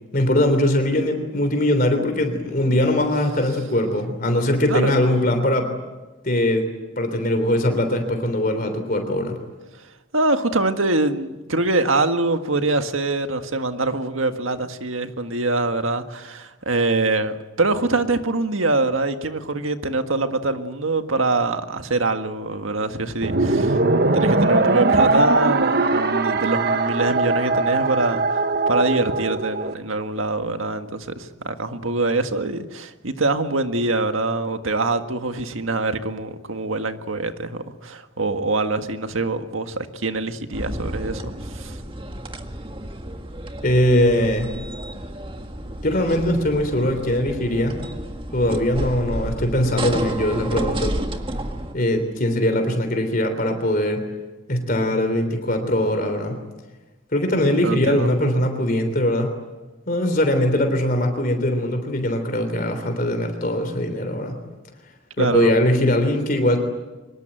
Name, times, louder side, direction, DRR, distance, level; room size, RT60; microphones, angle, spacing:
voice 1, 0.1-5.7 6.2-6.6 7.0-9.4 43.6-44.6 45.8-47.8 48.3-51.0 51.7-54.0 54.5-56.4 57.1-59.4 59.9-64.4 65.2-66.6, left 1 dB, 45° left, 3.4 m, -21 dB
voice 2, 4.7-5.0 10.1-23.8 24.1-28.4 28.7-41.8 57.6-58.1 65.2-65.5, right 2 dB, 85° right, 1.8 m, -24 dB
sound 1, 23.2-29.7, right 3 dB, 50° right, 1.1 m, -20 dB
sound 2, 40.5-51.7, right 1 dB, 25° right, 1.7 m, -31 dB
24.0 x 21.5 x 9.2 m
head